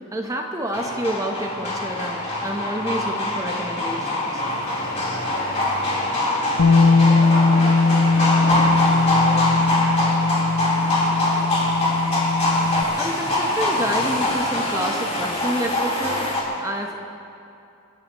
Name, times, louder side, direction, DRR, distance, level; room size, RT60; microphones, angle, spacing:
voice 1, 0.1-4.4 12.3-17.0, right 1 dB, 15° right, 1 dB, 1.1 m, -29 dB
sound 1, 0.7-16.4, left 1 dB, 35° left, 3.9 m, -23 dB
voice 2, 4.8-6.2 6.6-8.9 9.2-9.8 10.2-10.4 10.6-11.5, left 2 dB, 65° left, -5 dB, 3.7 m, -38 dB
Bass guitar, 6.6-12.8, left 3 dB, 90° left, 0.5 m, -19 dB
28.5 x 14.0 x 3.1 m, 2.6 s
head